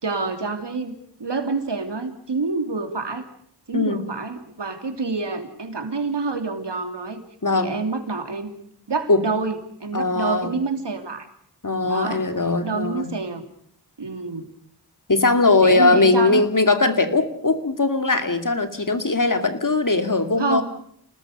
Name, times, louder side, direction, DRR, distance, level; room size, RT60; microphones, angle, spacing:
voice 1, 0.0-0.9 1.2-3.3 3.7-7.2 7.5-8.5 8.9-11.3 11.8-12.2 12.6-13.4 14.0-14.5 15.6-16.4 20.4-20.6, right 4 dB, 85° right, 6 dB, 3.2 m, -27 dB
voice 2, 3.7-4.1 7.4-7.7 9.1-9.2 9.9-10.6 11.6-13.2 15.1-20.6, left 3 dB, 50° left, 8 dB, 2.6 m, -20 dB
29.5 x 19.5 x 6.7 m, 0.65 s
wide cardioid pair, 60°, 41 cm